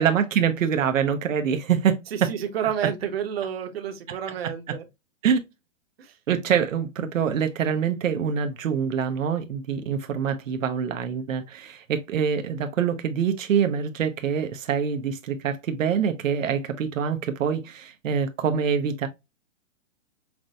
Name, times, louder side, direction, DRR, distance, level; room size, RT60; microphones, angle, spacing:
voice 1, 0.0-2.3 4.1-4.2 5.2-5.4 6.3-19.1, right 7 dB, 80° right, 0.8 m, -25 dB
voice 2, 2.1-4.8 6.0-6.1, right 9 dB, 50° right, 0.9 m, -30 dB
5.9 x 2.1 x 2.6 m
hypercardioid pair, 170°, 39 cm